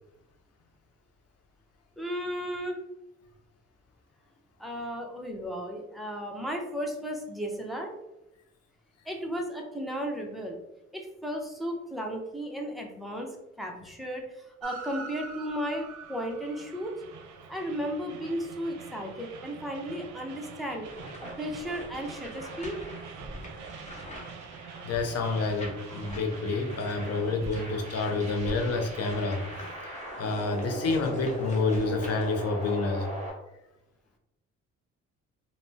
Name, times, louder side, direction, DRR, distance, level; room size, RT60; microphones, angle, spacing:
voice 1, 2.0-2.8 4.6-7.9 9.1-10.6 10.9-17.0 17.5-20.8 21.4-22.8 24.0-24.1, equal, ahead, 0 dB, 0.5 m, -35 dB
Train, 14.6-29.7, right 6 dB, 75° right, 0.5 m, -45 dB
sound 1, 20.8-24.9 25.4-26.3 26.7-32.7, equal, 25° left, 0.8 m, -48 dB
Chaotic delay feedback loop, 20.8-33.3, right 1 dB, 25° right, 1.0 m, -41 dB
voice 2, 24.8-29.4 29.8-29.9 30.2-33.1, left 3 dB, 55° left, 4 dB, 0.6 m, -28 dB
3.3 x 2.0 x 2.6 m, 0.91 s
cardioid pair, 90°, 30 cm